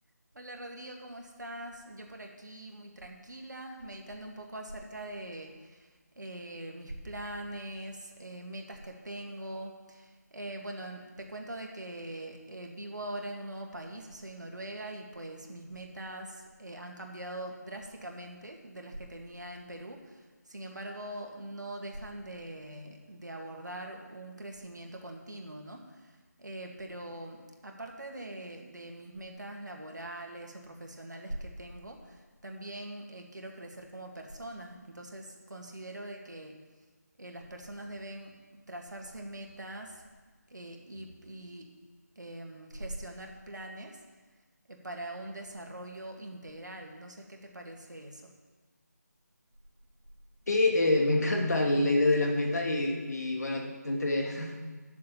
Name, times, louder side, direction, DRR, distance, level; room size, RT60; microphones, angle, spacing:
voice 1, 0.3-36.6 37.2-38.3 38.7-40.0 40.5-41.7 42.2-44.0 44.7-48.3, right 1 dB, 80° right, 2 dB, 2.1 m, -43 dB
voice 2, 50.5-54.6, left 2 dB, 65° left, 1 dB, 2.2 m, -26 dB
7.6 x 7.4 x 8.5 m, 1.3 s
figure-of-eight pair, 160°, 10 cm